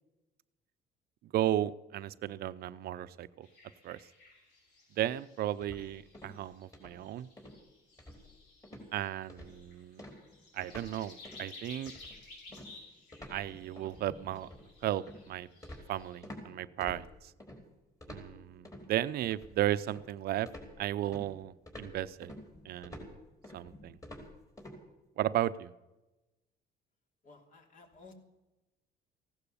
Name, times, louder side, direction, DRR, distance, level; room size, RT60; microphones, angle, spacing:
voice 1, 1.2-3.5 3.8-4.0 4.9-7.3 8.9-10.0 10.5-11.9 13.3-14.5 14.8-15.5 15.9-17.3 18.1-20.5 20.8-22.3 22.6-23.1 23.5-24.0 25.2-25.7, right 13 dB, 65° right, 14 dB, 0.6 m, -34 dB
sound 1, 3.4-16.2, left 2 dB, 85° left, 6.4 m, -55 dB
sound 2, 5.6-6.4 6.7-7.0 7.4-7.6 8.0-8.4 8.6-8.9 9.3-9.6 10.0-10.9 11.2-11.5 11.9-16.5 16.8-17.6 18.0-18.9 19.3-20.1 20.5-24.8, left 1 dB, 20° left, 4.6 m, -49 dB
voice 2, 27.2-28.1, left 3 dB, 50° left, 4 dB, 3.2 m, -55 dB
16.0 x 12.0 x 7.0 m, 1.0 s
cardioid pair, 110°, 17 cm